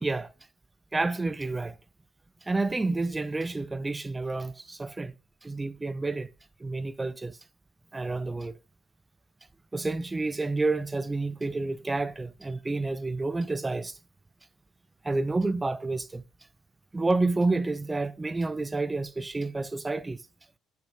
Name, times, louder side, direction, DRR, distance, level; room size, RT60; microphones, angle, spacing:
voice 1, 0.0-0.3 0.9-1.8 2.5-5.1 5.4-6.3 6.6-7.4 7.9-8.5 9.7-14.0 15.0-16.2 16.9-20.2, right 3 dB, 15° right, 0.3 m, -29 dB
11.5 x 5.9 x 2.3 m
cardioid pair, 115°, 0 cm